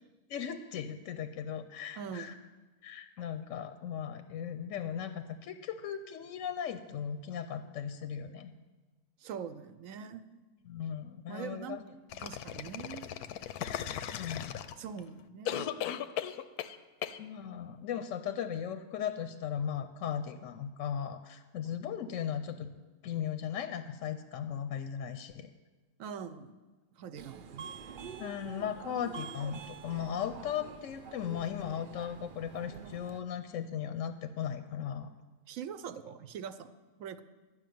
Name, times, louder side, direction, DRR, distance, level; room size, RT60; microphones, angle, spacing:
voice 1, 0.3-2.3 2.8-8.5 10.7-11.8 14.1-14.6 17.2-22.7 23.0-25.5 28.2-35.1, left 8 dB, 65° left, 10 dB, 0.9 m, -37 dB
voice 2, 2.0-2.3 9.2-10.4 11.3-11.8 12.2-13.1 14.8-15.8 26.0-26.6 26.9-27.9 35.5-36.7 37.0-37.2, right 7 dB, 65° right, 12 dB, 1.0 m, -43 dB
sound 1, 12.1-15.0 15.5-16.8 17.0-17.2, left 10 dB, 85° left, 1.1 m, -37 dB
Subway metro underground, 27.2-33.2, right 7 dB, 90° right, 0.4 m, -47 dB
13.0 x 6.1 x 9.3 m, 1.3 s
omnidirectional pair, 1.6 m